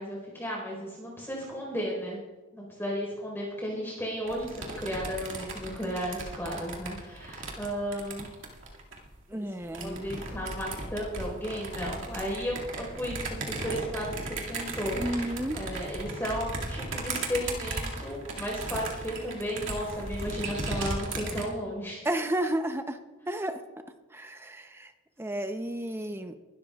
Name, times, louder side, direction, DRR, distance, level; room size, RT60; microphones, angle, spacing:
voice 1, 0.0-2.2 2.5-8.3 9.3-9.5 9.8-13.2 13.5-22.1, equal, 10° left, -3 dB, 4.4 m, -34 dB
sound 1, 4.3-9.1 9.6-21.5, right 2 dB, 60° right, 2.2 m, -36 dB
voice 2, 9.3-10.2 15.0-15.6 22.0-23.0 23.3-23.6 24.1-24.9 25.2-26.4, right 1 dB, 10° right, 7 dB, 0.7 m, -32 dB
22.0 x 12.5 x 2.4 m, 1.2 s
head